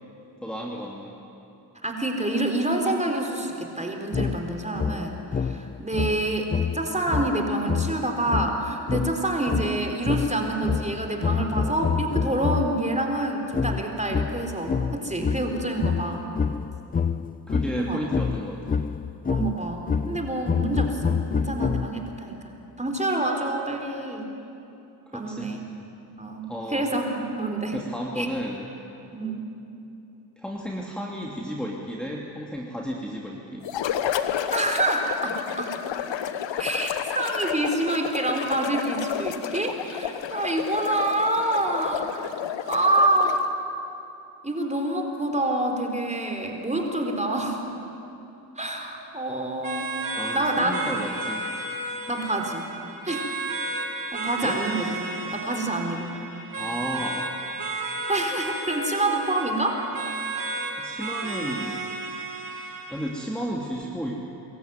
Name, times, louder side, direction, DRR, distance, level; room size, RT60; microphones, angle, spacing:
voice 1, 0.4-1.1 17.5-18.8 25.1-25.6 26.5-26.9 27.7-28.7 30.4-33.6 50.2-51.4 54.4-54.6 56.6-57.3 60.8-61.8 62.9-64.2, equal, ahead, -2 dB, 2.7 m, -33 dB
voice 2, 1.8-16.3 17.8-18.0 19.3-24.2 25.1-25.7 26.2-27.7 28.2-28.3 29.1-29.4 34.5-35.8 36.6-42.3 42.7-43.4 44.4-47.6 48.6-49.9 50.3-50.8 52.1-52.7 53.0-53.3 54.1-54.9 55.3-56.1 58.1-59.8, right 2 dB, 15° right, 2 dB, 4.1 m, -27 dB
sound 1, 4.1-12.9 13.5-22.2, left 6 dB, 20° left, 0.5 m, -28 dB
sound 2, 33.6-43.5, left 9 dB, 65° left, 1.3 m, -31 dB
sound 3, 49.6-63.2, right 2 dB, 45° right, 2.9 m, -33 dB
23.5 x 14.0 x 9.4 m, 2.8 s
supercardioid pair, 50°, 48 cm